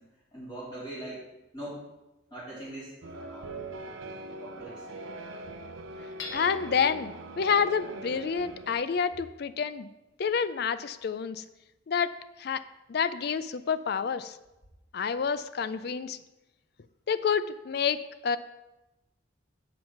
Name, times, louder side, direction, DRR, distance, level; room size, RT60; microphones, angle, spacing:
voice 1, 0.3-1.2 1.5-1.8 2.3-3.9 4.4-4.8, right 1 dB, 20° left, -9 dB, 3.3 m, -42 dB
sound 1, 3.0-8.7, right 2 dB, 80° right, 0.8 m, -42 dB
Hammer / Chink clink, 6.2-7.0, left 4 dB, 70° left, 1.3 m, -41 dB
voice 2, 6.3-9.9 10.2-11.4 11.9-12.6 12.9-14.4 14.9-16.2 17.1-18.4, left 6 dB, 50° left, 14 dB, 0.4 m, -28 dB
7.8 x 5.3 x 5.9 m, 0.99 s
head